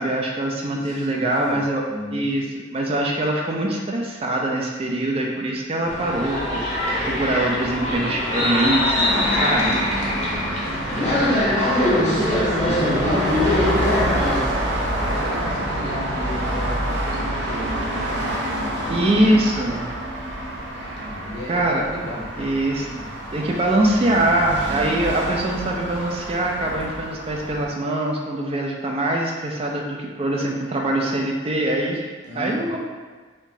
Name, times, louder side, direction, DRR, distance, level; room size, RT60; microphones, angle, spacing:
voice 1, 0.0-1.9 2.1-2.5 2.7-6.6 7.1-9.8 18.9-19.9 21.5-21.9 22.4-23.0 23.3-32.1 32.3-32.8, right 1 dB, 30° right, 0 dB, 0.4 m, -23 dB
voice 2, 0.8-1.6 1.9-2.3 10.8-13.7 14.1-19.5 21.0-22.4 22.8-23.0 32.2-32.8, equal, 65° left, -4 dB, 0.9 m, -34 dB
sound 1, 5.9-14.4, left 1 dB, 40° left, 0.7 m, -22 dB
sound 2, 9.0-27.7, right 1 dB, 75° right, 0.7 m, -28 dB
4.2 x 3.0 x 2.7 m, 1.4 s
head